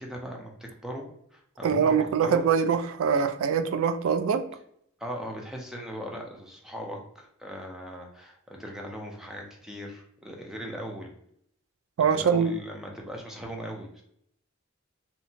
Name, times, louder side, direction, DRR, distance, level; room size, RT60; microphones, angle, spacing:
voice 1, 0.0-2.5 5.0-11.1 12.1-14.0, equal, ahead, 0 dB, 0.4 m, -39 dB
voice 2, 1.6-4.4 12.0-12.5, right 6 dB, 80° right, 10 dB, 0.3 m, -23 dB
2.7 x 2.1 x 2.7 m, 0.71 s
head